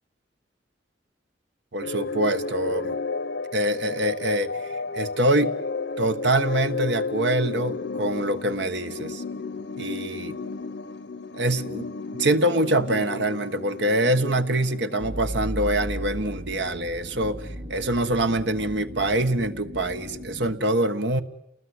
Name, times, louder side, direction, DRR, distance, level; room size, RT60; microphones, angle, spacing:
voice 1, 1.7-3.0 3.5-5.6 6.0-9.2 9.8-10.4 11.3-11.9 12.1-17.4 17.7-21.2, right 1 dB, 75° right, 9 dB, 1.4 m, -25 dB
sound 1, 1.8-15.5, left 4 dB, 80° left, 1.0 m, -33 dB
sound 2, 15.0-20.6, equal, 55° right, 3.3 m, -36 dB
29.0 x 20.0 x 9.8 m, 0.81 s
head